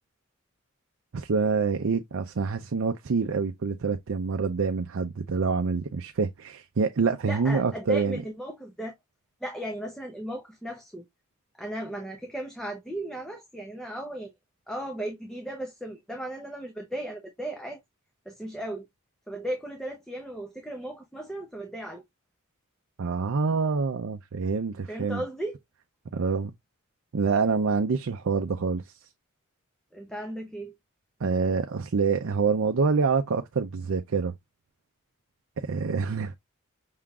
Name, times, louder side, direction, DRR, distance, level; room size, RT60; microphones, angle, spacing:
voice 1, 1.1-8.2 23.0-25.2 26.1-26.5 27.1-28.8 31.2-34.3 35.6-36.4, right 5 dB, 60° right, 0.5 m, -26 dB
voice 2, 7.2-9.0 9.4-11.0 11.5-14.3 14.7-17.8 18.3-18.9 19.3-22.0 24.9-25.6 29.9-30.7, right 1 dB, 5° left, 0.7 m, -36 dB
5.7 x 3.7 x 2.3 m
head